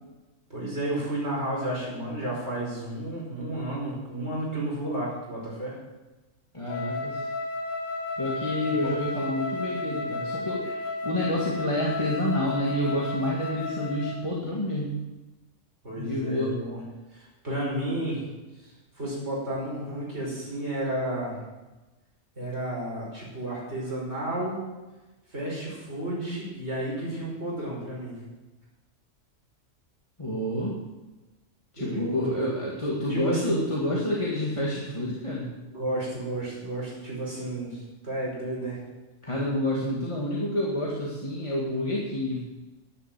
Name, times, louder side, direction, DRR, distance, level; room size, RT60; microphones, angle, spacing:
voice 1, 0.5-5.8 8.6-8.7 15.8-16.8 17.1-18.2 18.6-21.4 22.4-24.6 25.3-28.2 31.8-32.6 32.9-33.6 33.9-34.0 35.7-38.8, right 1 dB, 60° right, -4 dB, 5.7 m, -32 dB
voice 2, 6.5-7.3 8.2-10.7 11.0-15.0 16.0-16.6 30.2-30.8 31.7-35.5 39.2-42.4, left 1 dB, 25° left, -4 dB, 2.3 m, -28 dB
Wind instrument woodwind instrument, 6.7-14.3, left 2 dB, 90° left, 1.6 m, -33 dB
11.5 x 10.5 x 7.8 m, 1.1 s
omnidirectional pair, 1.3 m